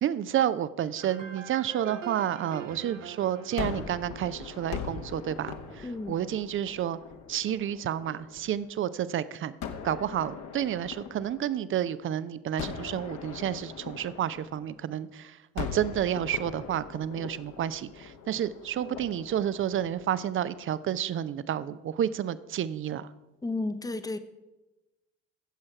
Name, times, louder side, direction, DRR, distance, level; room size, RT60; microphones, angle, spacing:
voice 1, 0.0-7.0 7.3-9.6 9.8-23.1, right 10 dB, 35° right, 16 dB, 0.6 m, -30 dB
sound 1, 1.0-5.6, right 6 dB, 90° right, 0.5 m, -44 dB
Gunshot gunfire, 3.6-8.7 9.6-12.0 12.6-15.1 15.6-20.8, left 7 dB, 50° left, 1.2 m, -41 dB
voice 2, 5.8-6.1 23.4-24.2, left 2 dB, 10° left, 11 dB, 0.8 m, -32 dB
14.5 x 7.6 x 4.6 m, 1.1 s
figure-of-eight pair, 50°, 37 cm